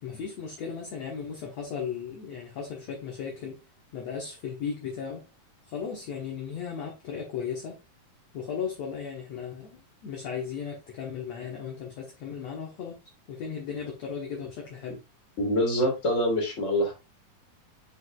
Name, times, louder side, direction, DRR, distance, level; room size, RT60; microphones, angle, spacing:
voice 1, 0.0-3.6 3.9-5.3 5.7-7.8 8.3-13.0 13.3-15.0, left 7 dB, 60° left, 2.2 m, -36 dB
voice 2, 15.4-16.9, equal, 25° left, 2.8 m, -25 dB
8.1 x 5.2 x 2.4 m
omnidirectional pair, 4.0 m